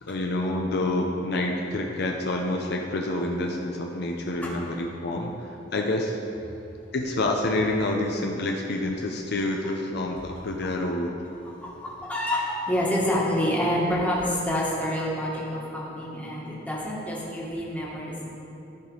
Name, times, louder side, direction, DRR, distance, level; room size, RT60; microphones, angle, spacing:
voice 1, 0.0-6.2 6.9-11.2, left 2 dB, 60° left, 1 dB, 0.6 m, -28 dB
voice 2, 11.4-18.1, equal, 10° left, -5 dB, 1.5 m, -27 dB
13.0 x 5.0 x 3.9 m, 2.9 s
head